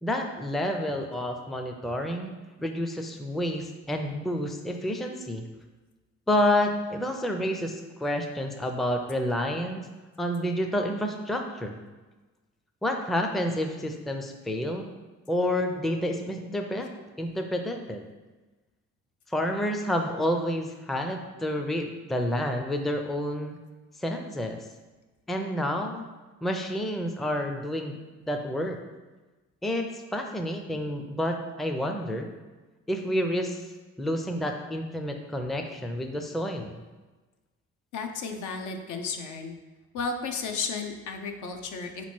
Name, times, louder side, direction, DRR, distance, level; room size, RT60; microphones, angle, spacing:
voice 1, 0.0-2.3 2.6-5.4 6.3-9.9 10.2-11.8 12.8-14.9 15.3-16.9 17.2-18.1 19.3-23.6 24.0-24.6 25.3-26.1 26.4-28.0 28.3-28.8 29.6-32.3 32.9-33.6 34.0-36.8, left 1 dB, ahead, 4 dB, 0.4 m, -29 dB
voice 2, 37.9-39.5 39.9-42.1, left 4 dB, 75° left, 4 dB, 0.6 m, -33 dB
4.1 x 3.0 x 4.3 m, 1.2 s
cardioid pair, 90°, 30 cm